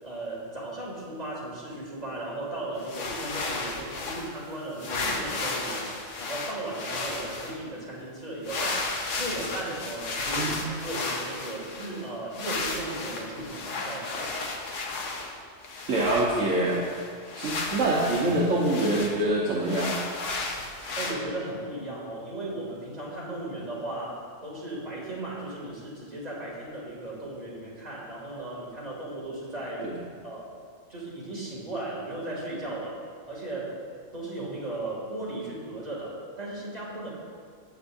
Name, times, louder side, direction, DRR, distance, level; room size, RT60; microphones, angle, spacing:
voice 1, 0.0-5.9 6.2-8.9 9.2-14.2 21.0-29.9 30.2-30.6 30.9-33.0 33.3-33.8 34.1-37.1, right 1 dB, 30° right, -6 dB, 2.8 m, -36 dB
sound 1, 2.8-4.5 4.8-7.5 8.4-12.1 12.3-15.3 15.6-19.2 19.6-21.1, left 3 dB, 70° left, 1.3 m, -34 dB
voice 2, 10.3-10.7 15.9-16.8 17.4-20.0 29.8-29.9, right 2 dB, 70° right, -5 dB, 1.4 m, -25 dB
14.5 x 8.3 x 2.7 m, 2.1 s
omnidirectional pair, 1.4 m